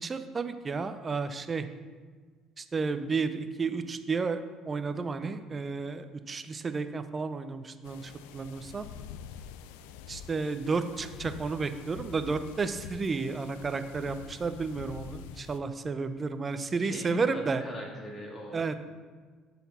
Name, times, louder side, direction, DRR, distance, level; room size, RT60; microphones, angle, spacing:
voice 1, 0.0-1.6 2.6-4.4 4.7-8.9 10.1-17.6 18.5-18.8, right 4 dB, 35° right, 10 dB, 0.6 m, -32 dB
sound 1, 7.8-15.6, left 9 dB, 85° left, 0.3 m, -46 dB
voice 2, 16.8-18.6, left 1 dB, 40° left, -2 dB, 2.6 m, -40 dB
11.0 x 4.2 x 4.3 m, 1.5 s
supercardioid pair, 70°, 0 cm